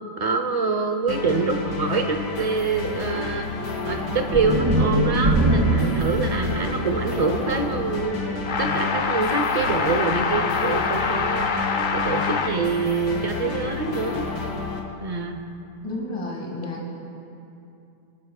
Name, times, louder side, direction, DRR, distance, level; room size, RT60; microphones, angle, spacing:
voice 1, 0.2-3.5 3.9-8.2 8.6-14.3 15.0-15.4, right 4 dB, 35° right, 5 dB, 0.6 m, -25 dB
sound 1, 1.1-14.8, left 3 dB, 85° left, 2.1 m, -31 dB
sound 2, 4.3-8.6, right 1 dB, 15° right, 2.1 m, -23 dB
sound 3, 8.4-12.5, left 5 dB, 65° left, 0.5 m, -25 dB
voice 2, 15.8-16.9, left 1 dB, 20° left, -3 dB, 2.0 m, -32 dB
26.5 x 13.0 x 2.3 m, 2.7 s
omnidirectional pair, 1.7 m